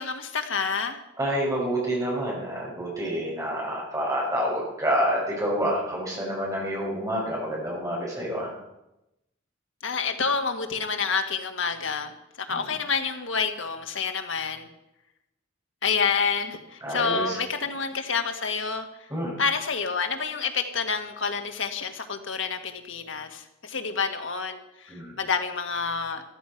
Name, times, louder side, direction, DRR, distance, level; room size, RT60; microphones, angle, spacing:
voice 1, 0.0-1.0 9.8-12.1 12.4-14.7 15.8-18.9 19.4-26.2, left 5 dB, 75° left, 6 dB, 1.7 m, -28 dB
voice 2, 1.2-8.5 12.5-12.7 16.8-17.4 19.1-19.3 24.9-25.1, equal, 15° right, -3 dB, 5.8 m, -28 dB
14.5 x 13.5 x 5.9 m, 0.89 s
head